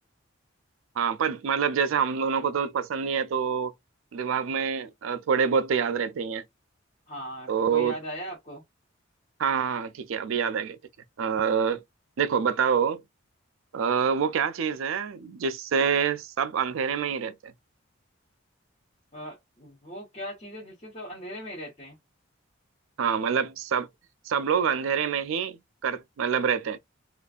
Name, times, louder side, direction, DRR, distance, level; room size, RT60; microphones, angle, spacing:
voice 1, 1.0-3.7 4.1-6.4 7.5-8.0 9.4-10.8 11.2-11.8 12.2-13.0 13.7-17.3 23.0-23.9 24.3-26.8, right 6 dB, 75° right, 0.4 m, -26 dB
voice 2, 7.1-8.6 19.1-22.0, equal, 30° left, 1.0 m, -39 dB
2.5 x 2.4 x 2.3 m
head